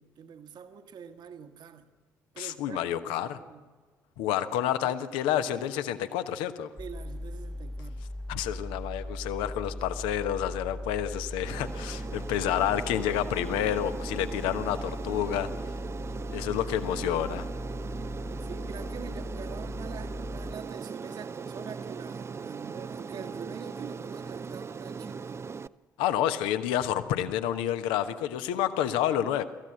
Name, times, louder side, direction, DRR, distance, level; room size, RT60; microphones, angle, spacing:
voice 1, 0.0-1.9 2.3-3.7 4.8-4.9 6.8-8.0 18.4-25.4, right 7 dB, 50° right, 1.5 m, -45 dB
voice 2, 2.4-3.4 4.2-6.7 8.3-15.5 16.3-17.5 26.0-29.4, left 11 dB, 65° left, 1.1 m, -29 dB
sound 1, 6.8-20.5, left 1 dB, 5° left, 1.0 m, -38 dB
Aircraft, 11.4-25.7, right 5 dB, 30° right, 0.6 m, -39 dB
26.0 x 15.0 x 7.6 m
figure-of-eight pair, 45°, 9 cm